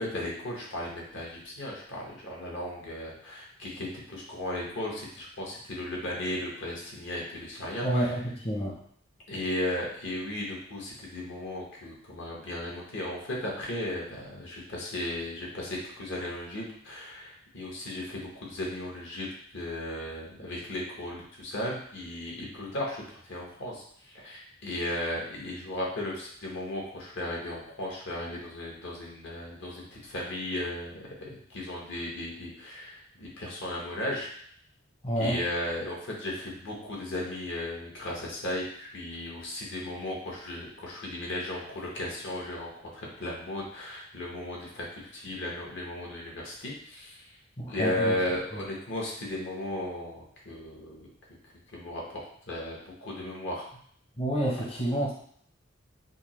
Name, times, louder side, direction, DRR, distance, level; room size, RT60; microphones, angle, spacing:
voice 1, 0.0-8.0 9.3-34.3 35.2-47.2 47.7-51.1 51.7-53.7, left 1 dB, 65° left, -3 dB, 1.1 m, -35 dB
voice 2, 7.8-8.7 35.0-35.4 47.6-48.1 54.2-55.1, right 1 dB, 30° left, -4 dB, 0.7 m, -28 dB
4.9 x 2.0 x 3.0 m, 0.62 s
head